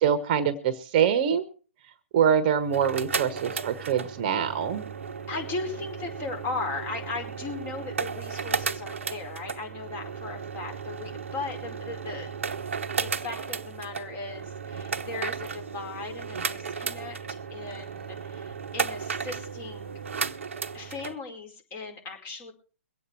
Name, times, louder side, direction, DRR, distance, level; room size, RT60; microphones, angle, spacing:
voice 1, 0.0-1.4 2.1-4.8, right 8 dB, 40° right, 10 dB, 1.3 m, -24 dB
sound 1, 2.6-21.1, right 5 dB, 65° right, 1.0 m, -34 dB
voice 2, 5.3-12.5 13.0-20.0 20.7-22.5, left 3 dB, 25° left, 3 dB, 4.7 m, -37 dB
23.0 x 8.5 x 4.6 m, 0.37 s
figure-of-eight pair, 130°, 7 cm